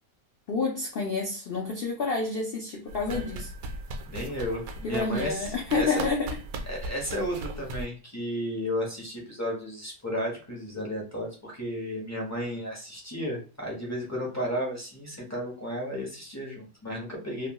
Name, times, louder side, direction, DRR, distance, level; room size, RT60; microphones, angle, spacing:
voice 1, 0.5-3.5 4.8-6.3, left 4 dB, 90° left, 0.5 m, -29 dB
sound 1, 2.9-7.9, right 2 dB, 70° right, 1.0 m, -38 dB
voice 2, 4.0-6.0 6.7-17.5, equal, 25° left, 0.4 m, -33 dB
2.9 x 2.2 x 2.8 m
omnidirectional pair, 1.7 m